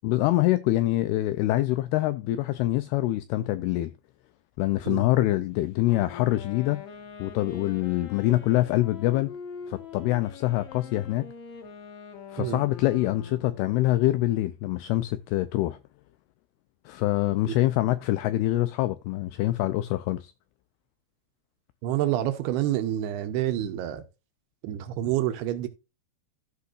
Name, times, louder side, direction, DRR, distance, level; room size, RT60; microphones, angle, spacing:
voice 1, 0.0-3.9 4.6-6.8 7.2-9.3 9.7-11.3 12.3-15.8 16.9-20.3, left 16 dB, 85° left, 2.3 m, -25 dB
Wind instrument woodwind instrument, 5.8-13.7, left 7 dB, 55° left, 2.2 m, -43 dB
voice 2, 21.8-24.0 24.6-25.7, right 12 dB, 75° right, 2.6 m, -28 dB
14.0 x 5.6 x 2.5 m
omnidirectional pair, 5.1 m